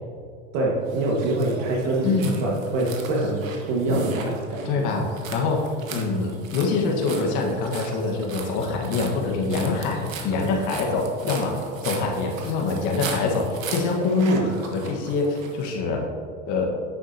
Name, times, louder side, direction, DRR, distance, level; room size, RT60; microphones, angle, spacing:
voice 1, 0.5-3.4 3.7-4.9, right 2 dB, 55° right, -3 dB, 1.7 m, -25 dB
sound 1, 0.9-15.7, right 4 dB, 90° right, 1.3 m, -37 dB
voice 2, 2.0-2.4 4.6-5.1 5.3-5.6 5.9-11.6 11.8-16.0 16.4-16.7, left 3 dB, 50° left, 0 dB, 1.5 m, -24 dB
9.8 x 7.1 x 2.8 m, 2.2 s
hypercardioid pair, 100°, 39 cm